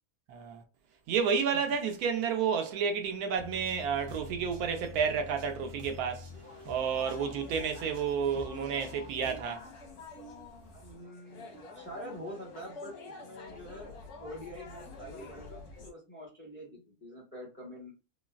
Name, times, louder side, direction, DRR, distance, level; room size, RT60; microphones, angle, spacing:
voice 1, 0.3-0.6 1.1-6.3 6.7-9.6, right 6 dB, 85° right, 1.1 m, -31 dB
sound 1, 3.3-9.4, left 2 dB, 45° right, 0.8 m, -47 dB
sound 2, 6.3-15.9, left 3 dB, 90° left, 1.5 m, -48 dB
voice 2, 10.7-17.9, equal, 10° left, 1.0 m, -46 dB
3.9 x 2.0 x 2.3 m
omnidirectional pair, 1.6 m